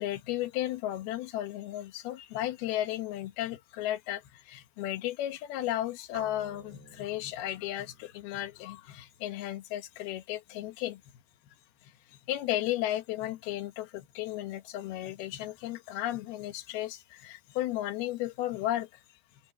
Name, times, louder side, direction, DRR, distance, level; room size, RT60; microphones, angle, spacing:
voice 1, 0.0-11.0 11.8-19.0, left 14 dB, 75° left, 2.9 m, -34 dB
sound 1, 6.1-10.1, right 4 dB, 25° right, 5.2 m, -54 dB
open air
omnidirectional pair, 4.8 m